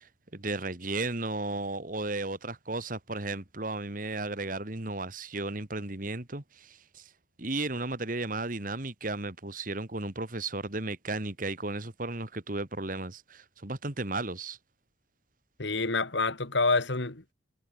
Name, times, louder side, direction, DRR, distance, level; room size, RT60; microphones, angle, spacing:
voice 1, 0.0-7.1 7.4-14.6, right 2 dB, 45° right, 2.0 m, -34 dB
voice 2, 15.6-17.3, left 3 dB, 70° left, 2.2 m, -27 dB
head